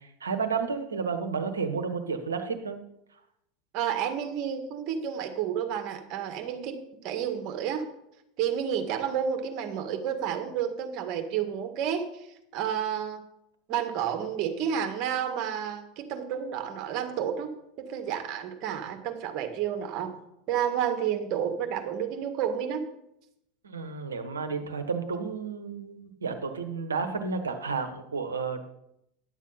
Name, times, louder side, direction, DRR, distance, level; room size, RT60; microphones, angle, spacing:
voice 1, 0.2-2.8 23.6-28.7, right 5 dB, 85° right, 7 dB, 1.1 m, -31 dB
voice 2, 3.7-6.8 7.0-7.8 8.4-12.3 12.5-13.2 13.7-17.5 17.8-20.1 20.5-22.8, right 8 dB, 50° right, 6 dB, 1.8 m, -30 dB
10.5 x 7.3 x 5.6 m, 0.80 s
hypercardioid pair, 85°, 0 cm